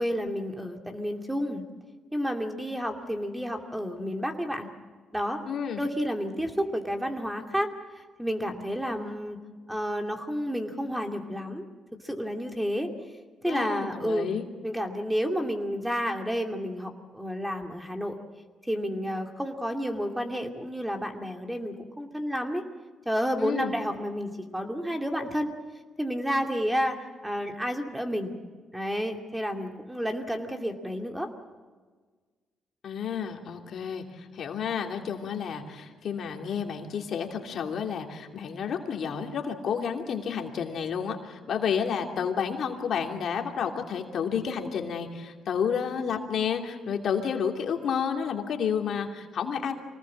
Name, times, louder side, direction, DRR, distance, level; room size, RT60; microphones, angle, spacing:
voice 1, 0.0-1.6 2.1-4.7 5.1-5.4 5.8-7.7 8.0-9.4 9.7-11.6 12.0-12.9 13.4-14.3 14.6-18.2 18.7-22.6 23.1-25.5 26.0-28.3 28.7-31.3, equal, 5° right, 4 dB, 2.5 m, -30 dB
voice 2, 5.5-5.8 13.5-14.5 23.4-23.7 32.8-49.7, left 7 dB, 65° left, 3 dB, 2.8 m, -30 dB
25.0 x 19.0 x 7.5 m, 1.4 s
cardioid pair, 90°, 0 cm